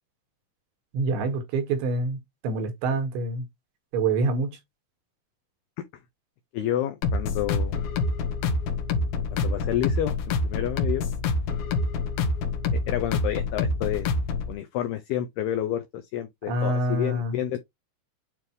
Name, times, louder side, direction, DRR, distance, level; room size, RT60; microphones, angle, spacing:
voice 1, 0.9-3.4 3.9-4.6 16.5-17.4, right 2 dB, 70° right, 3.9 m, -26 dB
voice 2, 6.5-7.8 9.3-10.1 10.4-11.1 12.7-14.1 14.5-17.6, left 11 dB, 85° left, 2.3 m, -29 dB
sound 1, 7.0-14.5, left 3 dB, 65° left, 2.5 m, -27 dB
9.2 x 3.4 x 3.1 m
omnidirectional pair, 5.6 m